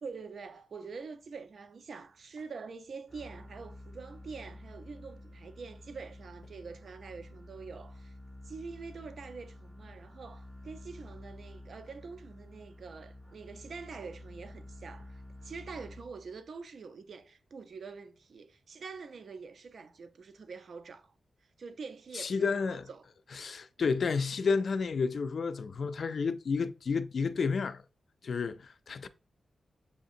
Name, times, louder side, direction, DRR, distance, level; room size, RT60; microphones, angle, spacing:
voice 1, 0.0-8.1 8.4-21.1 21.6-23.1 23.8-24.0, right 5 dB, 60° right, 0.5 m, -45 dB
sound 1, 3.1-16.5, left 1 dB, 5° right, 0.7 m, -50 dB
voice 2, 22.1-22.9 23.3-27.8 28.2-29.1, left 5 dB, 55° left, 0.3 m, -31 dB
6.9 x 2.8 x 2.5 m
wide cardioid pair, 145°, 0 cm